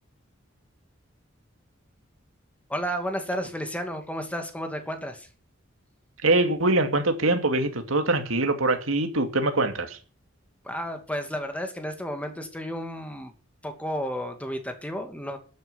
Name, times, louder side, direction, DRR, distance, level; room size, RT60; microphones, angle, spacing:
voice 1, 2.7-5.3 10.6-13.3 13.6-15.4, equal, 5° left, 2.5 m, -32 dB
voice 2, 6.2-10.0, right 2 dB, 80° right, 2.5 m, -23 dB
12.5 x 9.4 x 8.0 m
head